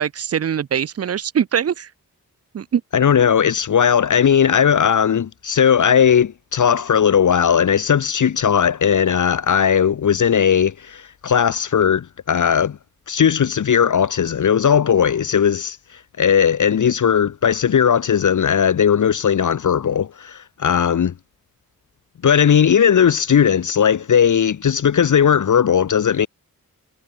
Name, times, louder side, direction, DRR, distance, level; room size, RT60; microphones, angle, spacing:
voice 1, 0.0-1.9 2.5-2.8, right 8 dB, 45° right, 0.4 m, -22 dB
voice 2, 2.9-12.8 13.1-21.1 22.2-26.3, left 8 dB, 55° left, 0.7 m, -17 dB
wide cardioid pair, 100°, 36 cm